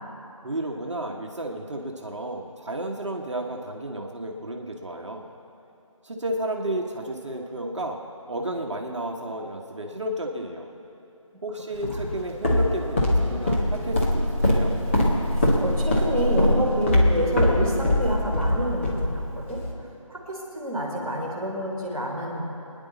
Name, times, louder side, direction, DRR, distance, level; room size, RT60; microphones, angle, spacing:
voice 1, 0.4-5.3 6.0-8.0 8.3-10.7 11.4-14.7, right 1 dB, 55° right, 1 dB, 1.3 m, -32 dB
Walk footsteps, 11.8-19.7, left 1 dB, 20° left, 1.5 m, -23 dB
voice 2, 15.3-19.6 20.1-22.4, equal, ahead, -17 dB, 2.3 m, -28 dB
25.0 x 10.0 x 4.1 m, 2.9 s
figure-of-eight pair, 165°, 18 cm